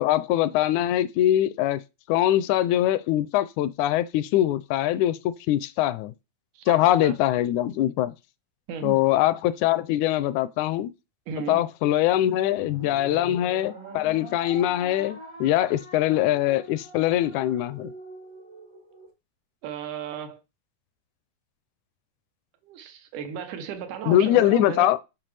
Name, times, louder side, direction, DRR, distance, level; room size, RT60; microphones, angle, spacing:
voice 1, 0.0-1.8 2.1-5.2 5.5-6.1 6.7-8.1 8.8-10.9 11.5-17.9 24.1-25.0, left 13 dB, 80° left, 1.9 m, -22 dB
voice 2, 6.6-7.2 8.7-9.0 11.3-11.7 19.6-20.4 22.6-24.9, right 7 dB, 85° right, 2.5 m, -35 dB
sound 1, 12.6-19.1, right 1 dB, 50° right, 0.3 m, -44 dB
7.4 x 5.6 x 3.3 m
omnidirectional pair, 3.5 m